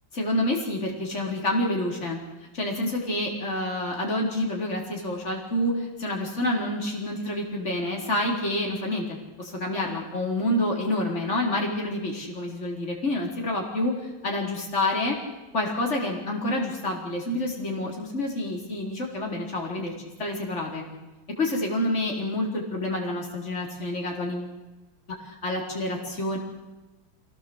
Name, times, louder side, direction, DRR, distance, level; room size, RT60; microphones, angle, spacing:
voice 1, 0.1-2.2 2.5-13.9 14.2-15.2 15.5-19.9 20.2-20.8 21.4-24.5 25.2-26.4, left 1 dB, 40° left, -1 dB, 4.7 m, -28 dB
26.5 x 17.5 x 8.1 m, 1.1 s
omnidirectional pair, 1.9 m